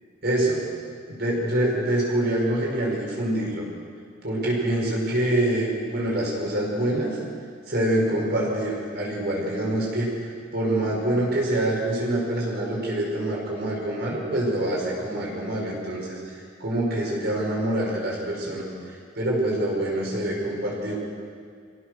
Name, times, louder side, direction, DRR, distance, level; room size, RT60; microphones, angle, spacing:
voice 1, 0.2-0.6 1.1-3.6 4.2-7.2 7.7-21.0, right 1 dB, 55° right, -3 dB, 5.8 m, -25 dB
25.5 x 17.0 x 6.4 m, 2.1 s
head